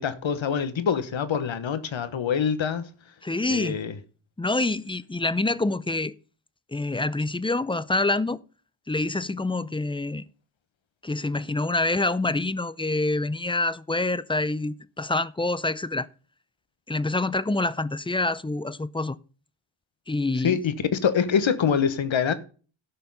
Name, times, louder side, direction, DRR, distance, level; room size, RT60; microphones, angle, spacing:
voice 1, 0.0-2.9 3.5-4.0 20.4-22.3, left 7 dB, 65° left, 1.2 m, -25 dB
voice 2, 3.2-3.8 4.4-6.1 6.7-8.4 8.9-10.2 11.0-16.1 16.9-19.2 20.1-20.6, left 2 dB, 10° left, 0.5 m, -26 dB
13.0 x 5.7 x 5.5 m
cardioid pair, 55°, 49 cm